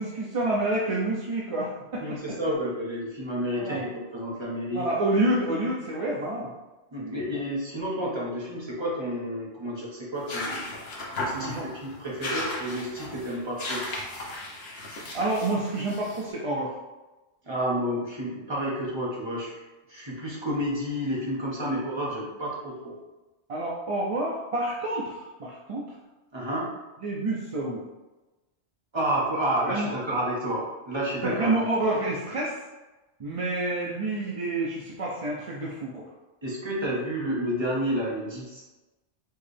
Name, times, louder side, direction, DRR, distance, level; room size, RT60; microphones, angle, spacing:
voice 1, 0.0-2.0 3.6-3.8 4.7-6.5 7.0-7.2 11.3-11.7 15.1-16.8 23.5-25.9 27.0-27.8 29.6-29.9 31.2-32.6 33.2-36.0, right 2 dB, 45° right, -4 dB, 0.5 m, -28 dB
voice 2, 2.0-4.9 6.9-10.7 11.1-13.8 17.4-19.6 19.9-23.0 26.3-26.7 28.9-31.6 36.4-38.6, equal, 25° right, -5 dB, 1.1 m, -30 dB
sound 1, 10.1-16.3, left 2 dB, 65° left, 1.1 m, -35 dB
4.6 x 3.1 x 3.3 m, 1.1 s
omnidirectional pair, 1.2 m